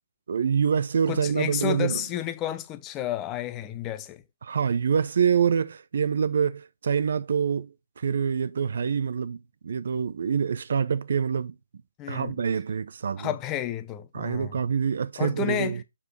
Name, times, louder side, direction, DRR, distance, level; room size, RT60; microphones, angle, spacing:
voice 1, 0.3-2.0 4.4-11.5 12.1-13.3 14.1-15.8, right 7 dB, 60° right, 0.8 m, -26 dB
voice 2, 1.1-4.2 12.0-12.4 13.2-14.6 15.2-15.8, left 12 dB, 20° left, 0.8 m, -31 dB
7.4 x 4.8 x 4.6 m
figure-of-eight pair, 145°, 0 cm